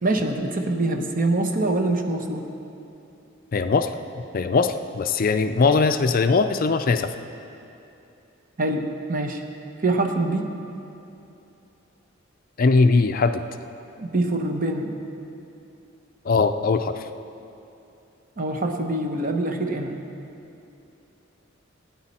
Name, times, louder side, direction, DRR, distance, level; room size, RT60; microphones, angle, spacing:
voice 1, 0.0-2.4 8.6-9.4 9.8-10.5 14.0-15.0 18.4-20.0, right 2 dB, 40° right, 4 dB, 0.9 m, -24 dB
voice 2, 3.5-7.1 12.6-13.4 16.2-17.1, left 4 dB, 45° left, 9 dB, 0.4 m, -21 dB
16.5 x 9.6 x 4.3 m, 2.8 s
head